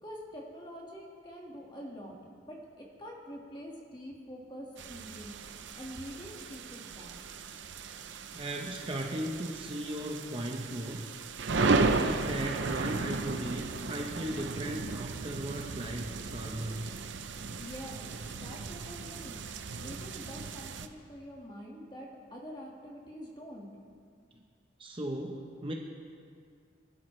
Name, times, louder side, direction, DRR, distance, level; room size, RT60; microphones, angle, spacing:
voice 1, 0.0-2.2 2.4-5.3 5.8-7.2 17.6-18.1 18.4-19.4 19.8-23.7, equal, 25° left, -2 dB, 1.9 m, -45 dB
sound 1, 4.8-20.9, right 3 dB, 65° right, 0.6 m, -35 dB
voice 2, 8.3-11.1 11.5-16.9 24.8-25.7, right 1 dB, 25° right, 1 dB, 0.9 m, -37 dB
24.0 x 12.0 x 3.3 m, 2.2 s
head